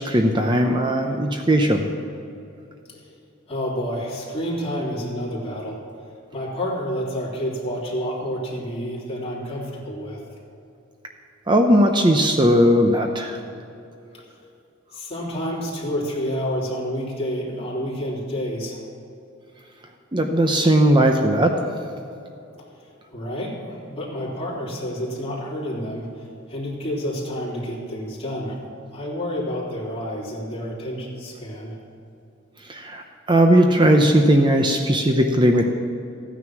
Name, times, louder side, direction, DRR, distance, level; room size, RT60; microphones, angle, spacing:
voice 1, 0.0-1.9 11.5-13.4 20.1-21.6 32.7-35.6, right 1 dB, 25° right, 3 dB, 0.8 m, -18 dB
voice 2, 3.5-5.8 6.3-10.2 14.9-18.8 23.1-26.1 26.5-28.6 28.9-31.8, equal, 30° left, -5 dB, 3.3 m, -29 dB
15.0 x 9.6 x 6.1 m, 2.7 s
head